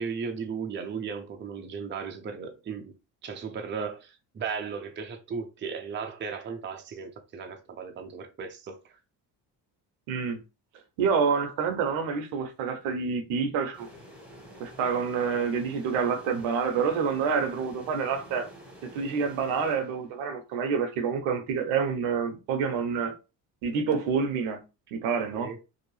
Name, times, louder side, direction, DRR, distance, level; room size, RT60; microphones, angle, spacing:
voice 1, 0.0-3.0 3.2-8.8 25.3-25.6, right 5 dB, 25° right, 0.5 m, -36 dB
voice 2, 10.1-10.4 11.0-13.9 14.6-18.5 18.8-23.1 23.6-24.6 24.9-25.5, right 6 dB, 75° right, 0.8 m, -28 dB
sound 1, 13.7-20.4, left 1 dB, ahead, 1.1 m, -49 dB
2.7 x 2.1 x 3.1 m
supercardioid pair, 70°, 49 cm